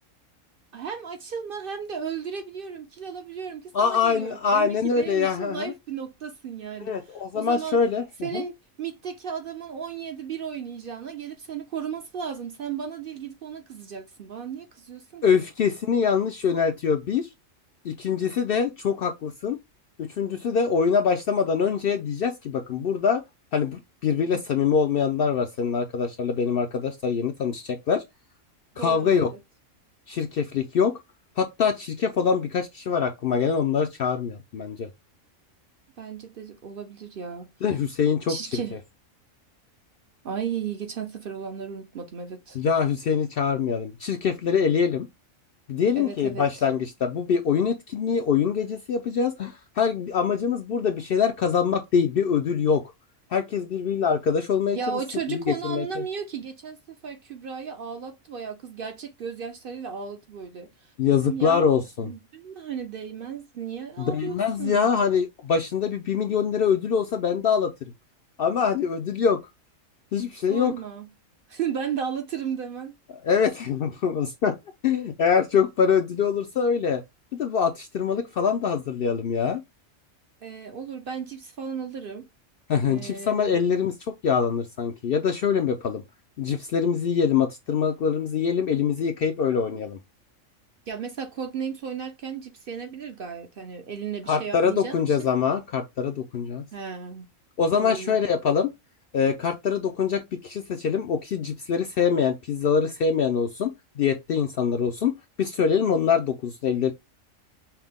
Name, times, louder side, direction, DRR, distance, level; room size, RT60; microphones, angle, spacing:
voice 1, 0.7-7.8 8.2-15.4 24.2-24.4 28.7-29.4 36.0-37.5 38.3-38.8 40.2-42.6 46.0-46.6 54.7-56.8 57.0-61.6 62.0-64.9 70.5-71.1 71.5-73.0 80.4-82.3 82.9-83.6 90.9-95.3 96.7-97.3 97.7-98.2, right 7 dB, 55° right, 0.7 m, -35 dB
voice 2, 3.7-5.7 6.8-8.4 15.2-17.3 17.8-19.6 20.0-23.2 23.5-28.0 28.8-29.3 30.1-31.0 31.4-34.9 37.6-38.6 42.6-45.1 45.7-52.8 53.3-55.0 55.3-55.8 61.0-62.1 64.0-67.7 68.4-69.4 70.1-70.7 73.2-74.6 74.8-77.0 77.4-79.6 82.7-86.0 86.4-90.0 94.3-96.6 97.6-98.7 99.1-105.1 105.4-106.9, left 6 dB, 65° left, 0.6 m, -24 dB
5.8 x 2.1 x 3.5 m
omnidirectional pair, 1.4 m